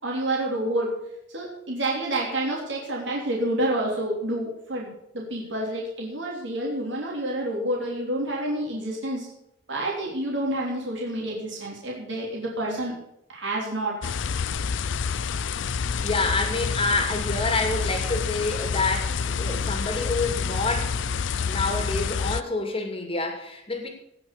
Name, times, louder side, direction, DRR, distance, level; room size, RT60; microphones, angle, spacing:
voice 1, 0.0-0.9 1.3-9.3 9.7-12.9 13.3-14.0, right 1 dB, 75° right, -2 dB, 3.2 m, -28 dB
sound 1, 14.0-22.4, left 5 dB, 80° left, 0.5 m, -28 dB
voice 2, 16.0-20.9 21.5-23.9, left 3 dB, 30° left, 5 dB, 2.4 m, -27 dB
17.5 x 6.0 x 6.6 m, 0.81 s
head